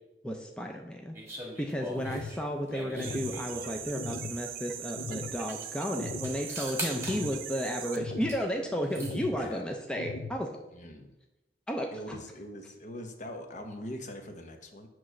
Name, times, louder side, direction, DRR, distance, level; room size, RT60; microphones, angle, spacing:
voice 1, 0.2-1.2 1.6-10.6 11.7-12.2, equal, 5° left, 2 dB, 0.5 m, -33 dB
sound 1, 1.1-3.9 5.0-5.1 5.3-5.7 6.2-7.2 7.9-8.4 8.7-9.2, right 1 dB, 15° right, 1.4 m, -41 dB
sound 2, 2.0-2.4 3.0-3.4 4.0-4.4 5.0-5.4 6.0-6.4 7.0-7.4 8.0-8.4 9.0-9.4 10.0-10.4, left 3 dB, 60° left, 0.6 m, -38 dB
sound 3, 3.0-8.0, right 9 dB, 55° right, 0.6 m, -41 dB
voice 2, 10.7-11.2 11.9-14.9, equal, 45° left, 4 dB, 0.9 m, -42 dB
8.7 x 3.1 x 6.1 m, 1.0 s
head